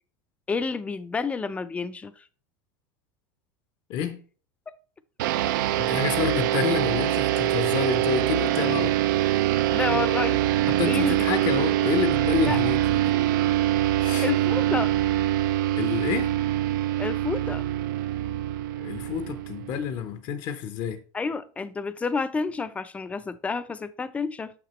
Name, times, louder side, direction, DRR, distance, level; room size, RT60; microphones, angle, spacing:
voice 1, 0.5-2.2 4.7-4.8 9.7-10.4 10.8-11.1 11.6-11.7 12.5-12.6 14.2-14.9 17.0-17.6 21.1-24.5, left 4 dB, 15° left, 0.4 m, -29 dB
voice 2, 3.9-4.2 5.8-8.9 10.7-13.1 14.0-14.3 15.8-16.4 18.8-21.0, left 8 dB, 50° left, 0.7 m, -29 dB
sound 1, 5.2-20.0, right 13 dB, 85° right, 0.4 m, -24 dB
5.9 x 5.9 x 3.0 m
supercardioid pair, 140°, 10 cm